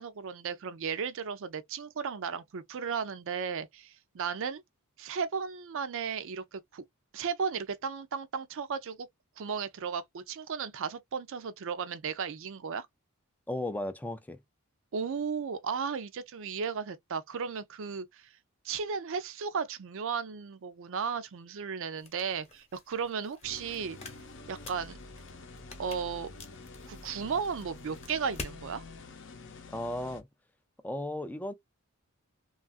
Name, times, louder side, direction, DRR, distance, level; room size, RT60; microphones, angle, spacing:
voice 1, 0.0-4.6 5.0-6.8 7.1-9.1 9.4-12.9 14.9-18.3 18.6-24.0 24.5-25.0 25.8-26.3 26.9-28.8, right 6 dB, 60° right, 0.4 m, -35 dB
voice 2, 13.5-14.4 29.7-30.3 30.8-31.5, left 1 dB, 5° left, 0.3 m, -35 dB
sound 1, 22.0-28.6, left 3 dB, 30° left, 0.8 m, -48 dB
sound 2, 23.4-30.2, left 3 dB, 60° left, 0.6 m, -48 dB
3.1 x 2.3 x 2.4 m
head